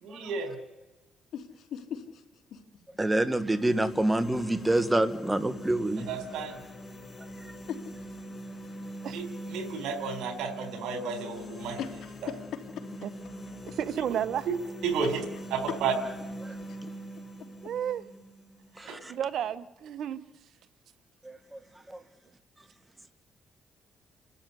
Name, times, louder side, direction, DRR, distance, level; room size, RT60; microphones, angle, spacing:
voice 1, 0.0-0.6 6.1-6.6 9.1-11.8 12.2-12.3 14.5-14.6 14.8-15.2 15.5-15.9 18.8-19.0, right 5 dB, 85° right, 8 dB, 4.0 m, -32 dB
voice 2, 1.3-2.2 2.5-2.6 7.7-7.8 11.8-12.1 12.8-12.9, left 8 dB, 75° left, 5 dB, 3.0 m, -38 dB
voice 3, 3.0-6.1 16.4-16.5 18.8-19.1 21.3-21.6 21.9-22.0, right 1 dB, 15° right, 11 dB, 1.7 m, -27 dB
sound 1, 3.2-19.3, equal, 30° left, 4.0 m, -43 dB
voice 4, 13.7-14.5 17.6-18.1 18.7-20.2, right 9 dB, 70° right, 14 dB, 1.0 m, -32 dB
29.0 x 13.0 x 9.7 m, 1.1 s
cardioid pair, 90°, 0 cm